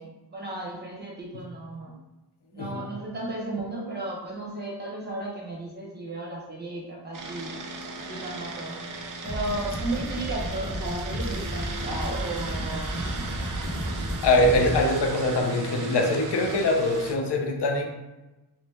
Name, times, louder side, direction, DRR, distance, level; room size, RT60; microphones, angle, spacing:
voice 1, 0.0-1.9 2.5-7.5 7.9-8.8 9.2-12.9, right 2 dB, 25° right, -4 dB, 1.1 m, -34 dB
voice 2, 2.6-2.9 14.2-17.9, left 2 dB, 90° left, 2 dB, 0.7 m, -23 dB
sound 1, 7.1-17.1, right 4 dB, 50° right, 0.5 m, -37 dB
sound 2, 9.2-14.9, equal, 10° left, 1.2 m, -32 dB
3.1 x 3.0 x 3.4 m, 1.1 s
wide cardioid pair, 135°, 40 cm